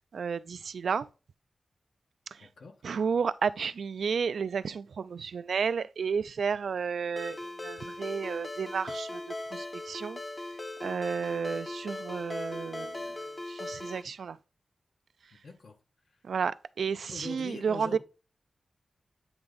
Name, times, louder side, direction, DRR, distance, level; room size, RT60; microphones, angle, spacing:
voice 1, 0.1-1.1 2.3-2.5 2.8-10.2 10.8-13.1 13.5-14.4 16.2-18.0, right 6 dB, 85° right, 0.3 m, -32 dB
voice 2, 2.4-2.7 15.3-15.8 17.1-18.0, left 4 dB, 80° left, 1.5 m, -43 dB
Ringtone, 7.2-14.0, left 2 dB, 25° left, 0.6 m, -39 dB
8.7 x 3.5 x 3.9 m
wide cardioid pair, 170°, 0 cm